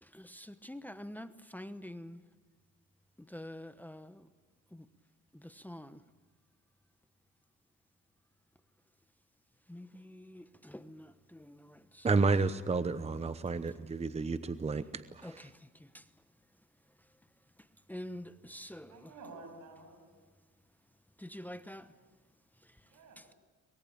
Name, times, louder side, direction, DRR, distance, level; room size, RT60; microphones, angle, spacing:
voice 1, 0.0-2.2 3.2-4.3 4.7-4.9 5.3-6.0 9.7-12.1 15.2-16.1 17.6-19.1 21.2-21.9 22.6-22.9 23.2-23.3, left 1 dB, 5° left, 1.0 m, -47 dB
voice 2, 12.0-15.4, right 4 dB, 20° right, 0.9 m, -31 dB
voice 3, 18.9-20.1 22.8-23.4, right 3 dB, 85° right, 7.8 m, -51 dB
23.5 x 21.5 x 8.7 m
cardioid pair, 90°, 30 cm